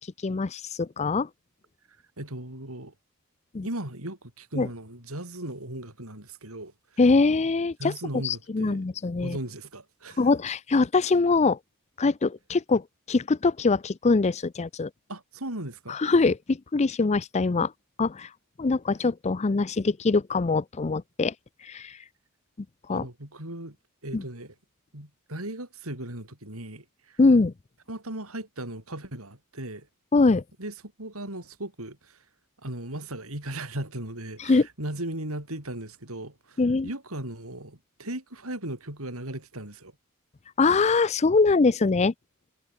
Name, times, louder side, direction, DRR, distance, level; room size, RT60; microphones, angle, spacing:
voice 1, 0.2-1.3 3.5-3.7 4.6-4.7 7.0-7.9 8.2-9.4 10.2-11.6 12.0-14.9 15.9-17.7 18.0-18.3 18.6-21.3 21.6-22.0 22.9-23.1 24.1-24.2 27.2-27.5 30.1-30.4 34.4-34.7 36.6-36.9 40.6-42.1, left 3 dB, 30° left, 0.5 m, -23 dB
voice 2, 1.9-2.9 3.6-7.0 7.8-8.8 9.2-10.2 15.1-16.0 22.9-23.8 24.0-24.5 24.9-27.2 27.9-29.9 30.6-32.3 32.6-39.9, right 1 dB, 85° right, 7.1 m, -37 dB
head